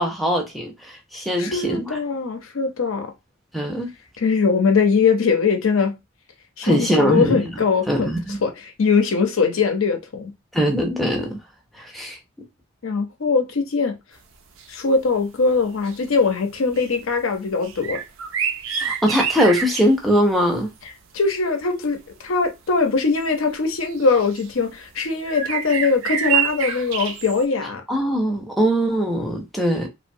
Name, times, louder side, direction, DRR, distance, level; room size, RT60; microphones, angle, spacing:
voice 1, 0.0-2.0 3.5-3.9 6.6-7.4 7.9-8.4 10.5-11.4 11.8-12.2 18.8-20.7 27.9-29.9, equal, ahead, 0.5 m, -21 dB
voice 2, 1.4-3.1 4.2-5.9 6.6-8.1 8.4-8.5 8.8-10.3 12.8-14.0 14.7-18.0 21.1-27.8, left 4 dB, 75° left, 0.6 m, -21 dB
sound 1, 14.6-14.7 15.1-15.2 15.6-16.3 16.7-16.9 17.6-20.0 22.1-22.2 23.2-23.3 23.9-24.5 25.3-27.4, right 8 dB, 70° right, 0.4 m, -27 dB
2.9 x 2.1 x 2.6 m
head